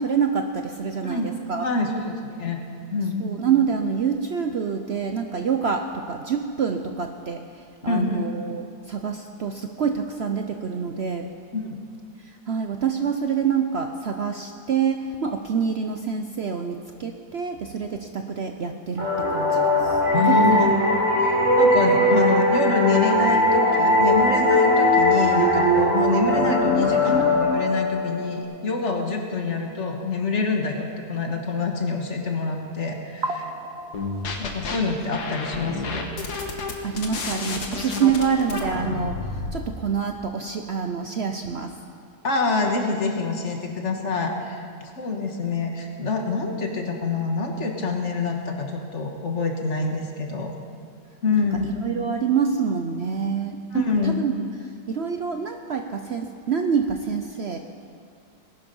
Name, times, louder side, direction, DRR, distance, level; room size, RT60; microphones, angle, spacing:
voice 1, 0.0-1.7 3.2-11.3 12.2-20.0 20.3-20.6 33.2-34.5 36.8-41.7 51.3-54.3 54.9-57.6, right 6 dB, 55° right, 5 dB, 0.8 m, -27 dB
voice 2, 1.6-2.6 2.9-3.3 7.8-8.2 11.5-11.9 20.1-20.7 21.2-33.2 34.4-36.1 42.2-50.5 51.2-51.7 53.7-54.2, left 3 dB, 50° left, 2 dB, 1.7 m, -26 dB
sound 1, 19.0-28.4, left 1 dB, 20° right, 3.4 m, -20 dB
sound 2, 33.9-34.8 35.1-39.5, left 4 dB, 90° left, 1.9 m, -31 dB
19.5 x 11.5 x 5.4 m, 2.2 s
omnidirectional pair, 1.6 m